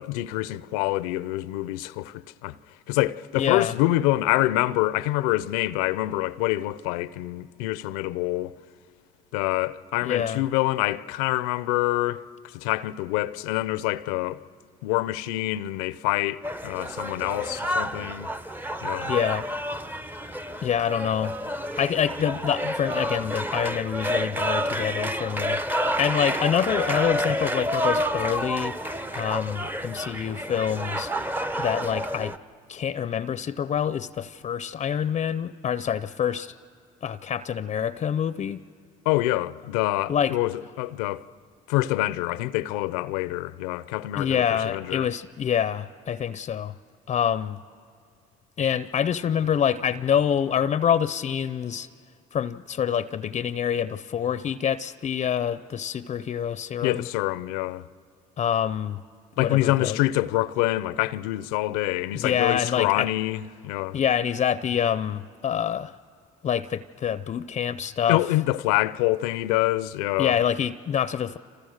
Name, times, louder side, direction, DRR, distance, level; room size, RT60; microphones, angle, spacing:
voice 1, 0.0-2.6 2.9-8.6 9.3-14.4 14.8-18.3 18.8-19.1 39.1-41.2 41.7-45.1 56.8-57.9 59.4-64.0 68.1-70.4, left 17 dB, 85° left, 0.6 m, -26 dB
voice 2, 3.4-3.8 10.0-10.5 19.1-19.5 20.6-21.4 21.8-25.6 26.0-28.8 29.1-31.1 31.6-32.3 32.7-36.5 37.0-38.6 40.1-40.4 44.2-46.7 47.1-47.6 48.6-51.9 52.3-57.1 58.4-59.0 59.4-60.0 62.1-63.1 63.9-65.9 66.4-68.2 70.2-71.4, left 8 dB, 35° left, 0.6 m, -26 dB
sound 1, 16.4-32.4, equal, 10° right, 0.7 m, -29 dB
28.0 x 27.5 x 6.5 m
supercardioid pair, 85°, 18 cm